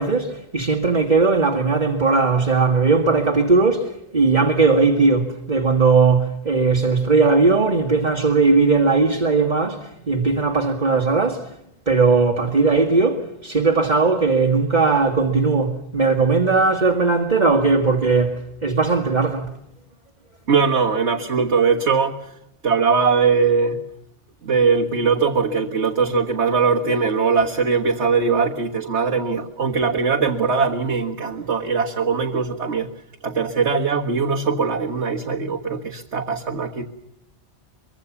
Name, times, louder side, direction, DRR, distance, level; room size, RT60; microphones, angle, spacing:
voice 1, 0.0-11.5 11.9-19.5, right 4 dB, 40° right, 1.9 m, -18 dB
voice 2, 20.5-22.3 22.6-23.8 24.4-32.9 33.2-36.8, right 5 dB, 85° right, 1.9 m, -20 dB
24.0 x 23.5 x 7.2 m
omnidirectional pair, 1.1 m